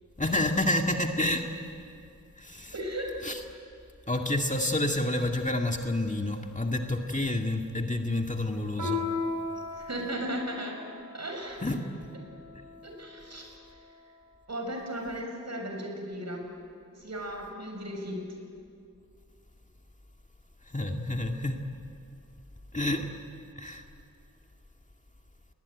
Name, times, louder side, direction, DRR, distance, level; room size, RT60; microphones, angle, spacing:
voice 1, 0.2-1.5 2.4-2.7 3.2-3.4 4.1-9.0 11.6-11.8 20.7-21.6 22.7-23.1 23.6-23.8, left 1 dB, 25° left, 3 dB, 2.0 m, -29 dB
voice 2, 2.7-3.1 9.7-10.8 11.1-11.6 12.8-13.5 14.5-16.4 17.0-18.2, equal, 55° right, 2 dB, 6.8 m, -36 dB
Piano, 8.8-13.7, left 3 dB, 70° right, 7.2 m, -37 dB
29.5 x 21.0 x 9.7 m, 2.4 s
wide cardioid pair, 75°, 32 cm